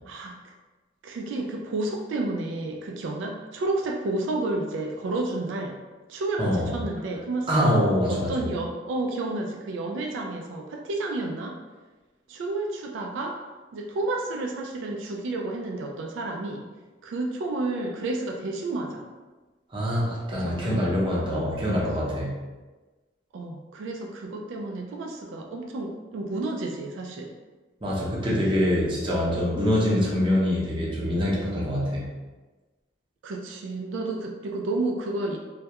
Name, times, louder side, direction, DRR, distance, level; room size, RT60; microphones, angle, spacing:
voice 1, 0.0-0.4 1.0-5.8 6.1-11.6 12.3-13.4 13.7-16.7 17.0-19.1 20.4-20.7 23.3-27.3 29.9-30.0 33.2-35.4, right 2 dB, 85° right, 2 dB, 0.3 m, -31 dB
voice 2, 7.5-8.3 19.7-22.3 27.8-32.1, equal, 25° right, -5 dB, 0.6 m, -24 dB
2.2 x 2.1 x 2.8 m, 1.2 s
head